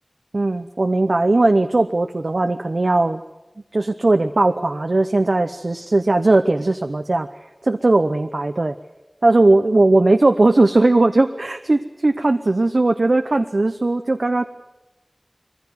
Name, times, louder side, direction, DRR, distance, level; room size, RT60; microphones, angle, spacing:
voice 1, 0.3-3.2 3.7-7.3 7.6-8.7 9.2-14.4, right 2 dB, 85° right, 7 dB, 0.8 m, -18 dB
22.0 x 15.5 x 9.6 m, 0.99 s
wide cardioid pair, 40°, 0 cm